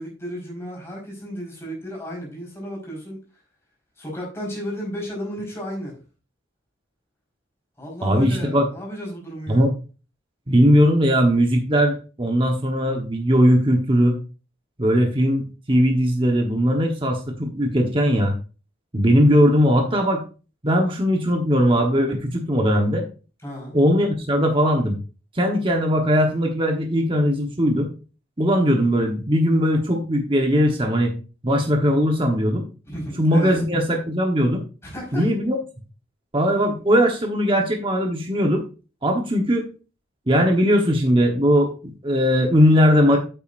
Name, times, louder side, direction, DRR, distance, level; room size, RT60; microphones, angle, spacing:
voice 1, 0.0-3.2 4.0-5.9 7.8-9.7 23.4-23.7 32.9-33.6 34.8-35.2, equal, 15° left, 4.8 m, -33 dB
voice 2, 8.0-8.7 9.5-9.7 10.5-14.2 14.8-18.3 18.9-20.2 20.6-23.1 23.7-25.0 25.3-27.9 28.4-31.1 31.4-32.6 33.2-34.6 35.1-35.6 36.3-38.6 39.0-39.7 40.3-43.2, equal, 25° right, 1.1 m, -19 dB
9.3 x 8.5 x 2.6 m
head